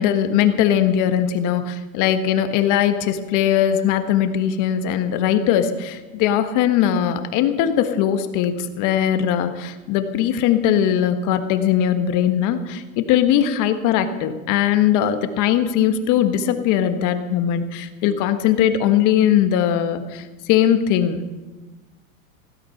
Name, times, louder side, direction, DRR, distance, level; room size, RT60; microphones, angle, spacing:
voice 1, 0.0-21.2, left 10 dB, 45° left, 8 dB, 1.6 m, -20 dB
16.5 x 12.5 x 5.8 m, 1.2 s
supercardioid pair, 135°, 42 cm